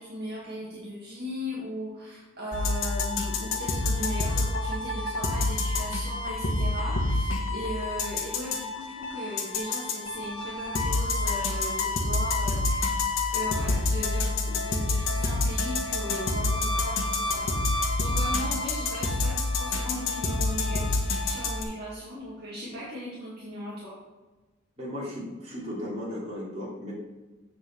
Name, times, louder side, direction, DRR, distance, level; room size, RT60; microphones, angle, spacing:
voice 1, 0.0-12.9 13.3-24.0, equal, 45° right, -7 dB, 2.0 m, -38 dB
sound 1, 2.5-21.6, left 2 dB, 70° left, 1.3 m, -28 dB
voice 2, 24.8-26.9, left 1 dB, 30° right, -6 dB, 3.0 m, -35 dB
7.8 x 4.5 x 6.7 m, 1.2 s
head